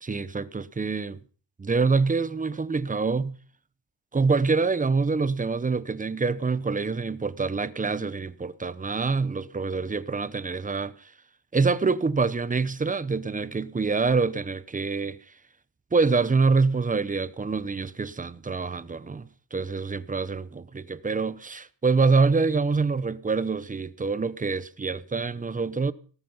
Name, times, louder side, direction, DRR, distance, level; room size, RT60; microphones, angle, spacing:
voice 1, 0.0-1.2 1.6-3.3 4.1-10.9 11.5-15.2 15.9-25.9, right 4 dB, 15° right, 0.8 m, -26 dB
18.0 x 14.0 x 5.5 m
cardioid pair, 120°, 47 cm